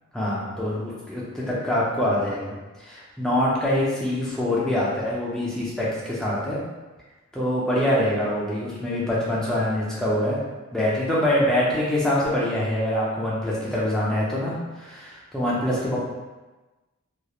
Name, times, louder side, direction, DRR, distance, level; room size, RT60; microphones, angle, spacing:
voice 1, 0.1-6.6 7.3-10.4 10.7-16.0, left 1 dB, 5° left, -7 dB, 0.5 m, -25 dB
2.3 x 2.0 x 2.9 m, 1.2 s
head